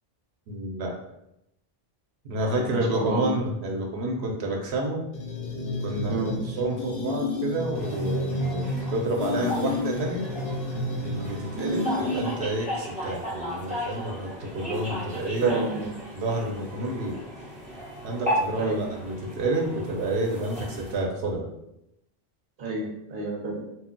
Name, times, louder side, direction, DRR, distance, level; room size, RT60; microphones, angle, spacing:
voice 1, 0.5-1.0 2.2-5.0 5.8-10.3 11.0-15.6 16.1-17.2 18.0-21.5, right 1 dB, 90° right, 0 dB, 0.9 m, -29 dB
voice 2, 2.6-3.3 6.1-6.4 11.5-11.9 15.4-15.9 18.6-18.8 22.6-23.6, right 3 dB, 60° right, -2 dB, 0.9 m, -29 dB
sound 1, 5.1-12.6, left 2 dB, 70° left, 0.7 m, -30 dB
sound 2, 7.7-21.0, equal, 10° right, 0.7 m, -35 dB
2.2 x 2.1 x 3.7 m, 0.83 s
omnidirectional pair, 1.0 m